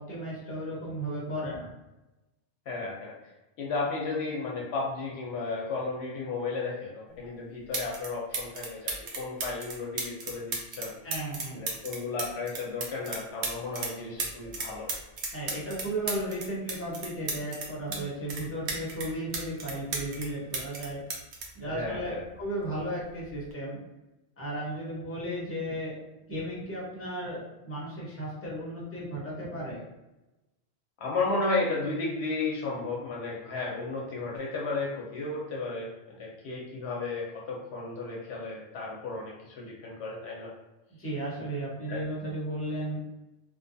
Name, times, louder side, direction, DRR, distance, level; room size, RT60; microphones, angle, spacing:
voice 1, 0.0-1.7 11.0-11.6 15.3-21.0 21.5-23.8 24.4-26.0 26.3-29.8 41.0-43.0, right 1 dB, 15° left, -6 dB, 0.7 m, -35 dB
voice 2, 2.7-3.1 3.6-11.0 11.5-14.9 21.6-22.2 31.0-40.5 41.9-42.0, left 3 dB, 85° left, -4 dB, 0.8 m, -33 dB
sound 1, 7.2-7.3 7.7-8.1 8.3-13.9 14.2-18.0 18.3-20.3 20.5-22.4 23.3-23.5, right 3 dB, 80° right, 0.9 m, -34 dB
2.5 x 2.2 x 2.5 m, 1.0 s
omnidirectional pair, 1.1 m